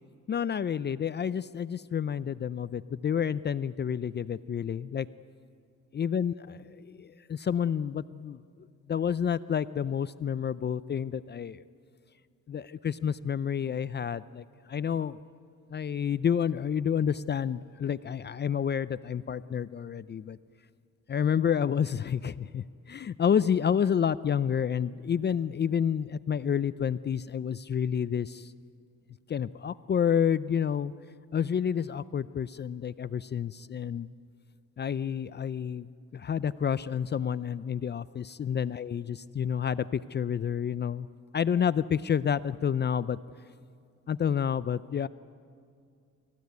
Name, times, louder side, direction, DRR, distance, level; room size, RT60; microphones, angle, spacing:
voice 1, 0.3-5.1 5.9-8.4 8.9-11.6 12.5-15.2 15.7-20.4 21.1-28.5 29.3-30.9 31.3-34.1 34.8-35.9 36.1-41.1 41.3-43.2 44.1-45.1, left 8 dB, 35° left, 15 dB, 0.5 m, -29 dB
27.0 x 15.0 x 9.5 m, 2.3 s
cardioid pair, 90°, 30 cm